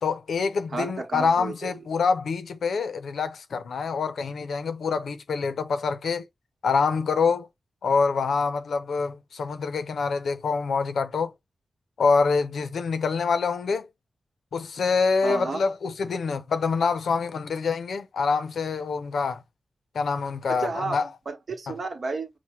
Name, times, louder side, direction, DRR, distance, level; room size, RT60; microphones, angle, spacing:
voice 1, 0.0-6.2 6.6-7.5 7.8-11.3 12.0-13.9 14.5-19.4 19.9-21.1, left 5 dB, 85° left, 0.6 m, -26 dB
voice 2, 0.7-1.7 15.2-15.6 20.5-21.0 21.3-22.3, right 3 dB, 65° right, 1.0 m, -31 dB
5.8 x 2.1 x 2.9 m
cardioid pair, 60°, 0 cm